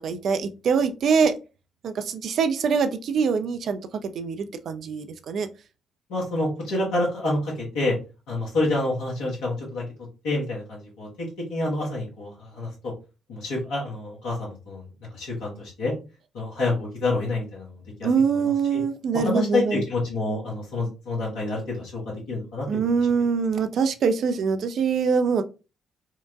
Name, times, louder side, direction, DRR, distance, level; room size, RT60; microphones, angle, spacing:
voice 1, 0.0-1.4 1.8-5.5 18.0-19.8 22.7-25.4, right 5 dB, 50° right, 8 dB, 0.4 m, -24 dB
voice 2, 6.1-8.0 8.3-9.8 10.2-11.1 11.5-12.9 13.3-14.9 15.1-15.9 16.3-18.8 19.1-22.9, left 2 dB, 65° left, -4 dB, 1.3 m, -28 dB
4.5 x 2.2 x 2.4 m, 0.31 s
figure-of-eight pair, 45°, 0 cm